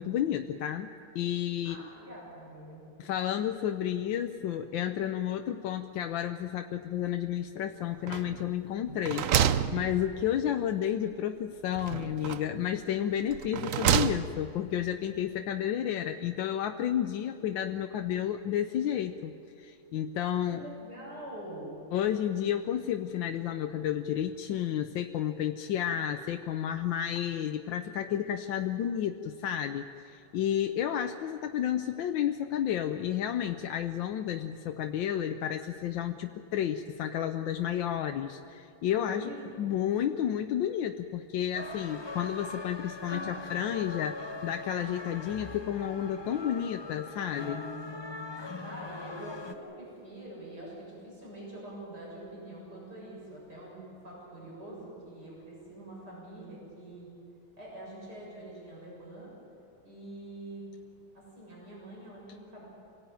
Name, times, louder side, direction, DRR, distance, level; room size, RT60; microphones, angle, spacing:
voice 1, 0.0-1.8 3.0-19.3 19.6-20.6 21.9-39.3 39.6-47.6, left 10 dB, 70° left, 6 dB, 1.4 m, -31 dB
voice 2, 1.6-2.8 20.5-21.8 39.0-39.7 48.6-57.1 57.6-59.3 59.8-60.6 61.1-62.6, right 1 dB, 50° right, -4 dB, 8.0 m, -45 dB
sound 1, 8.1-8.6 8.9-10.5 11.7-12.6 13.3-14.6, right 9 dB, 80° right, 0.7 m, -29 dB
sound 2, 41.5-49.5, left 2 dB, 20° left, 0.7 m, -41 dB
26.0 x 17.5 x 9.2 m, 2.8 s
omnidirectional pair, 2.3 m